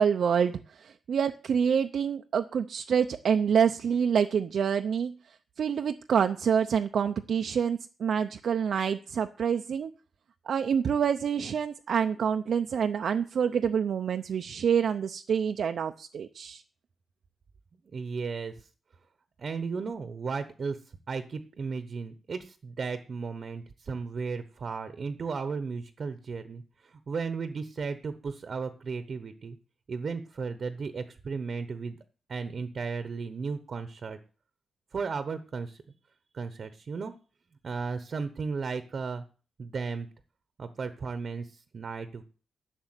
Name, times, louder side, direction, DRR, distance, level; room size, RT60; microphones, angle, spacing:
voice 1, 0.0-5.1 5.6-9.9 10.5-16.6, right 7 dB, 65° right, 7 dB, 0.6 m, -27 dB
voice 2, 17.9-18.7 19.4-29.6 29.9-32.0 32.3-34.2 34.9-35.8 36.3-37.1 37.6-39.2 39.6-40.1 40.6-42.2, right 5 dB, 45° right, 11 dB, 1.0 m, -35 dB
12.0 x 6.9 x 9.0 m, 0.38 s
wide cardioid pair, 145°, 0 cm